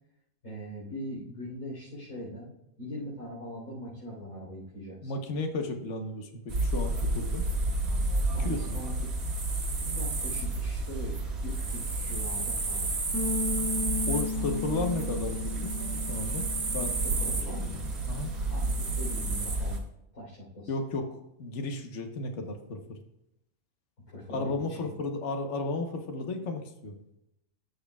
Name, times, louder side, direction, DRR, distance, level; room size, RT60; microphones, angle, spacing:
voice 1, 0.4-2.5 2.8-5.2 8.3-8.9 9.8-12.9 17.0-17.8 18.5-19.8 20.1-20.7 24.1-24.9, equal, 85° left, -7 dB, 4.2 m, -41 dB
voice 2, 5.0-7.4 8.4-8.8 14.1-15.7 16.1-16.5 16.7-17.0 17.5-18.3 20.7-23.0 24.3-27.0, left 3 dB, 55° left, 4 dB, 1.4 m, -34 dB
sound 1, 6.5-19.8, right 2 dB, 90° right, 2.1 m, -30 dB
Bass guitar, 13.1-19.4, left 4 dB, 10° left, 1.7 m, -37 dB
14.5 x 6.5 x 2.4 m, 0.83 s
omnidirectional pair, 1.5 m